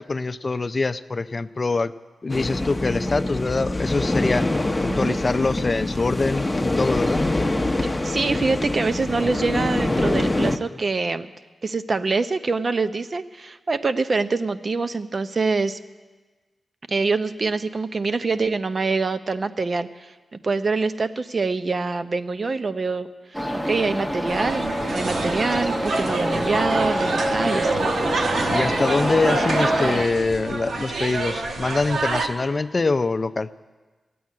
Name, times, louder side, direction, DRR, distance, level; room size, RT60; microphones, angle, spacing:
voice 1, 0.0-1.9 2.2-4.5 4.8-7.2 26.3-26.4 28.5-33.5, left 3 dB, 40° left, 12 dB, 0.5 m, -24 dB
sound 1, 2.3-10.6, left 2 dB, 15° left, 0.9 m, -24 dB
voice 2, 8.0-11.3 11.6-15.8 16.9-20.1 20.4-27.9, right 4 dB, 50° right, 11 dB, 0.7 m, -25 dB
sound 2, 23.3-30.1, equal, 10° right, 1.2 m, -26 dB
sound 3, 24.3-32.3, right 3 dB, 80° right, 1.1 m, -27 dB
13.5 x 8.6 x 9.5 m, 1.3 s
cardioid pair, 65°, 0 cm